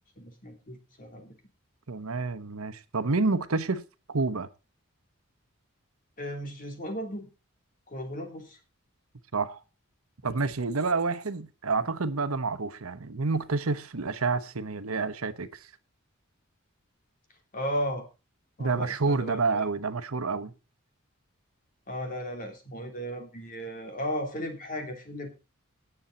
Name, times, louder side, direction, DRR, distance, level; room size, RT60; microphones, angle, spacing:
voice 1, 0.2-1.4 6.2-7.3 7.9-8.6 17.5-18.0 18.6-19.7 21.9-25.4, equal, 40° left, 3.3 m, -35 dB
voice 2, 1.9-3.8 4.1-4.5 9.3-9.6 10.2-15.7 18.6-20.5, right 4 dB, 85° right, 1.0 m, -29 dB
18.0 x 7.2 x 4.1 m
head